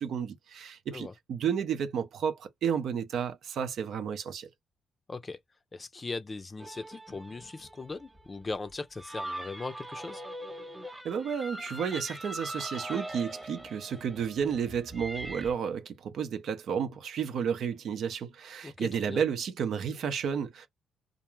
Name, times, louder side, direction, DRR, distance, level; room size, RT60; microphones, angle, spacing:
voice 1, 0.0-4.5 11.0-20.7, right 7 dB, 70° right, 0.6 m, -32 dB
voice 2, 5.1-5.4 5.7-10.2 18.6-19.2, left 3 dB, 30° left, 0.5 m, -39 dB
sound 1, 6.6-15.5, right 1 dB, 10° right, 1.0 m, -42 dB
2.5 x 2.2 x 3.0 m
cardioid pair, 75°, 0 cm